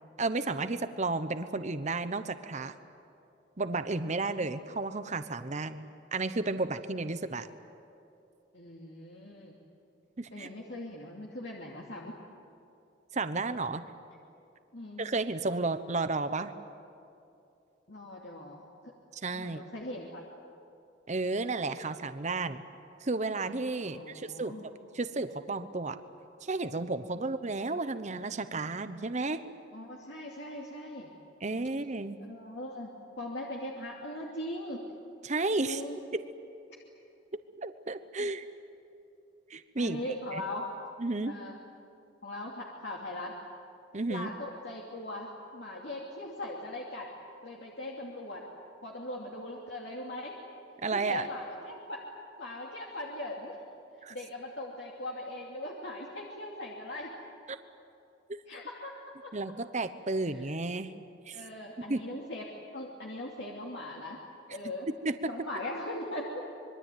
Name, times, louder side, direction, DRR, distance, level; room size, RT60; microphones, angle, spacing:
voice 1, 0.2-2.7 3.6-7.5 10.2-10.5 13.1-13.8 15.0-16.5 19.1-19.6 21.1-22.6 23.0-26.0 26.4-29.4 31.4-32.2 35.2-35.8 36.1-36.3 37.6-38.4 39.5-40.0 40.3-40.4 41.0-41.4 43.9-44.3 50.8-51.2 54.0-54.1 57.5-57.6 58.3-58.4 59.3-60.9 61.3-61.4 61.8-62.0 65.0-65.2, right 3 dB, 40° right, 11 dB, 1.0 m, -32 dB
voice 2, 8.5-9.6 10.3-12.2 14.7-15.1 17.9-18.6 19.3-20.2 23.8-24.6 27.2-27.3 29.7-31.1 32.2-32.9 33.2-34.8 35.6-36.0 39.8-40.6 41.2-41.6 42.2-43.3 44.1-47.1 47.4-48.5 48.8-50.4 50.9-52.0 52.4-53.6 54.1-57.1 58.5-59.3 61.3-64.2 64.5-64.9 65.3-66.5, left 1 dB, 65° left, -2 dB, 2.7 m, -40 dB
26.0 x 22.5 x 9.3 m, 2.7 s
head